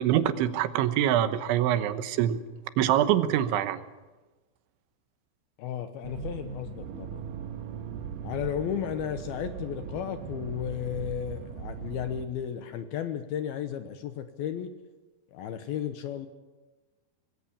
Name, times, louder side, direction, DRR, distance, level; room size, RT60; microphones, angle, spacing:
voice 1, 0.0-2.4 2.8-3.8, right 11 dB, 85° right, 11 dB, 3.5 m, -24 dB
voice 2, 5.6-7.2 8.2-14.7 15.3-16.3, left 9 dB, 75° left, 9 dB, 2.5 m, -34 dB
Accelerating revving vroom, 6.0-12.3, right 6 dB, 65° right, 2.3 m, -39 dB
25.5 x 19.5 x 7.2 m, 1.2 s
omnidirectional pair, 5.3 m